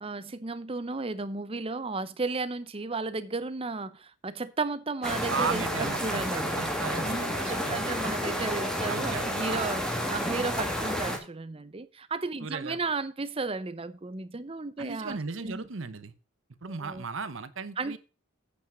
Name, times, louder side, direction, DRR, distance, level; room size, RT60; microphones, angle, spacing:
voice 1, 0.0-6.6 7.0-15.7 16.7-17.0 17.8-18.0, right 3 dB, 25° right, 0.6 m, -34 dB
sound 1, 5.0-11.2, equal, 5° left, 1.6 m, -31 dB
voice 2, 5.3-8.0 8.9-9.7 12.4-12.8 14.8-16.1 16.6-18.0, right 5 dB, 65° right, 0.9 m, -36 dB
Wind instrument woodwind instrument, 6.9-10.8, left 7 dB, 30° left, 2.9 m, -47 dB
8.4 x 5.9 x 6.1 m
head